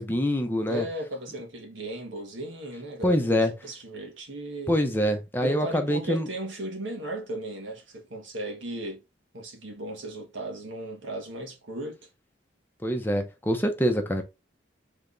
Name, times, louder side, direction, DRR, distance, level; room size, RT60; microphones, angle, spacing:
voice 1, 0.0-0.8 3.0-3.5 4.7-6.3 12.8-14.2, equal, 10° left, 0.7 m, -25 dB
voice 2, 0.7-4.8 5.4-9.0 9.3-12.0, right 1 dB, 80° right, 1.5 m, -36 dB
3.4 x 3.4 x 3.9 m
head